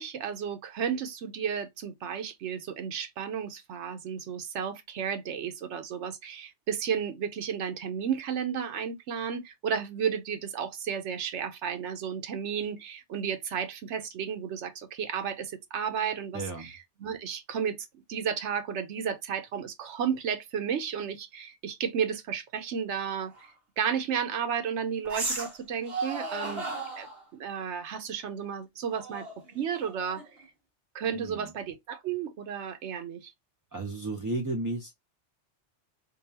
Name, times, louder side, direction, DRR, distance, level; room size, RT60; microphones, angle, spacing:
voice 1, 0.0-16.7 17.0-17.8 18.1-26.6 27.0-27.1 27.3-30.2 30.9-33.3, right 7 dB, 80° right, 1.1 m, -33 dB
voice 2, 16.3-16.7 31.1-31.5 33.7-34.9, right 2 dB, 25° right, 0.5 m, -33 dB
sound 1, 23.3-23.5 25.1-25.6 25.9-27.2 28.9-30.4, right 3 dB, 60° right, 1.3 m, -35 dB
5.1 x 2.3 x 2.7 m
omnidirectional pair, 1.2 m